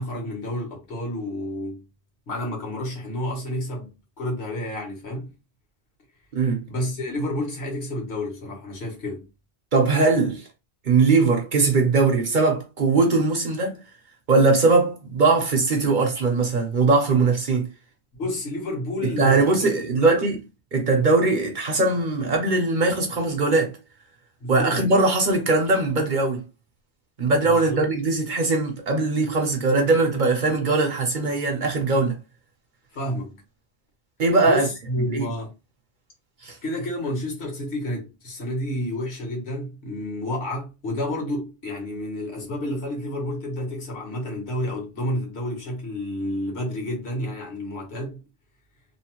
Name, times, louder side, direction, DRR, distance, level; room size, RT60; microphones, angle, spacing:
voice 1, 0.0-1.8 2.3-5.3 6.7-9.3 18.1-20.3 24.4-24.8 27.4-27.8 32.9-33.4 34.4-35.5 36.6-48.2, left 1 dB, 80° left, 1.5 m, -30 dB
voice 2, 9.7-10.4 10.8-13.8 14.3-17.7 19.0-20.4 20.7-23.8 24.5-26.4 27.2-32.2 34.2-34.7 35.1-35.3 36.4-36.5, right 3 dB, 50° right, 0.8 m, -20 dB
3.0 x 2.0 x 2.9 m
omnidirectional pair, 1.1 m